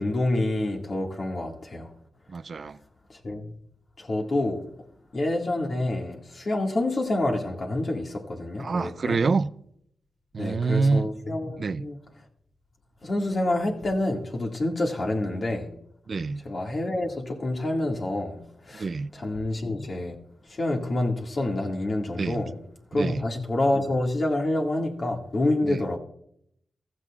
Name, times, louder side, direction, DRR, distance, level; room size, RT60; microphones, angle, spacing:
voice 1, 0.0-1.9 3.2-3.5 4.0-4.6 5.1-9.2 10.4-12.0 13.0-15.7 16.5-18.4 18.7-18.9 19.1-20.1 20.5-22.5 22.9-26.0, left 1 dB, 45° left, 1.9 m, -27 dB
voice 2, 2.3-2.8 8.6-9.5 10.3-11.1 11.6-11.9 16.1-16.4 18.7-19.1 22.2-22.4 22.9-23.2 25.6-25.8, right 4 dB, 50° right, 0.4 m, -26 dB
15.0 x 13.5 x 2.4 m
cardioid pair, 75°, 0 cm